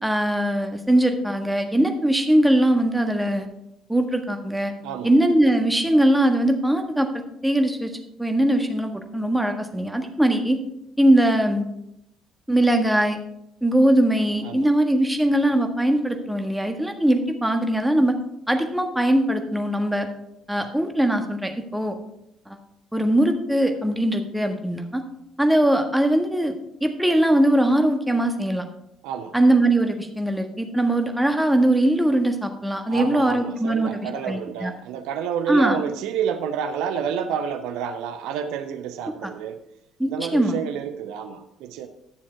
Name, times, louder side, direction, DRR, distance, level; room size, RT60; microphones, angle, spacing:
voice 1, 0.0-3.5 3.9-4.7 5.0-7.1 7.4-7.9 8.2-10.6 11.0-11.6 12.5-13.2 13.6-18.2 18.5-20.1 20.5-21.9 22.5-22.6 22.9-25.0 25.4-26.5 26.8-28.6 29.3-34.7 35.5-35.8 39.2-39.3 40.0-40.6, right 1 dB, 5° right, 5 dB, 1.5 m, -21 dB
voice 2, 32.9-39.6 40.1-41.9, right 8 dB, 65° right, 9 dB, 0.6 m, -29 dB
11.5 x 7.2 x 4.5 m, 0.81 s
figure-of-eight pair, 50°, 0 cm